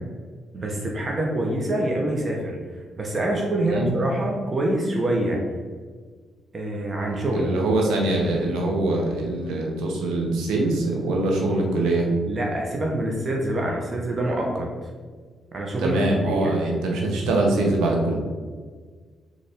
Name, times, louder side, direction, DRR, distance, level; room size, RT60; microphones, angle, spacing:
voice 1, 0.5-2.6 3.0-5.4 6.5-7.5 12.2-14.7 15.5-16.6, right 1 dB, 40° right, -1 dB, 0.7 m, -25 dB
voice 2, 7.3-12.0 15.8-18.2, right 2 dB, 85° right, 0 dB, 0.7 m, -23 dB
4.0 x 2.5 x 3.4 m, 1.5 s
supercardioid pair, 55°, 0 cm